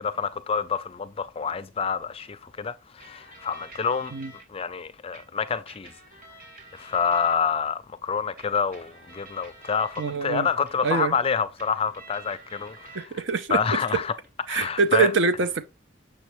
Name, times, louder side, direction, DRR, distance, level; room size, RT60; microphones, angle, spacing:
voice 1, 0.0-4.1 4.5-5.9 6.7-13.0 13.5-14.1 14.5-15.1, left 6 dB, 25° left, 0.4 m, -27 dB
sound 1, 3.0-4.4 5.1-7.7 8.4-13.1 13.4-14.3, right 2 dB, 40° right, 2.4 m, -49 dB
voice 2, 10.0-10.5 10.8-11.1 12.9-13.6 14.5-15.7, right 4 dB, 60° right, 0.6 m, -24 dB
7.1 x 7.0 x 3.0 m
head